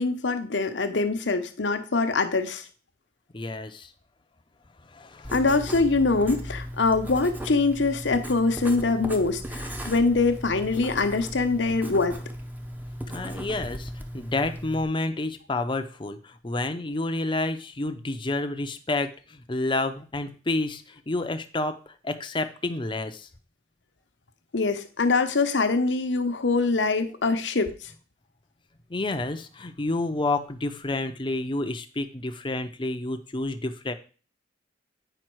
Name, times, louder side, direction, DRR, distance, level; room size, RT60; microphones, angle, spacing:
voice 1, 0.0-2.6 5.3-12.2 24.5-27.9, left 3 dB, 70° left, 7 dB, 0.9 m, -24 dB
voice 2, 3.3-3.9 4.9-5.3 13.1-21.8 22.0-23.3 28.9-33.9, left 2 dB, 25° left, 8 dB, 0.7 m, -29 dB
Writing, 5.2-14.8, equal, 10° right, 0.7 m, -37 dB
9.0 x 5.2 x 4.6 m, 0.38 s
head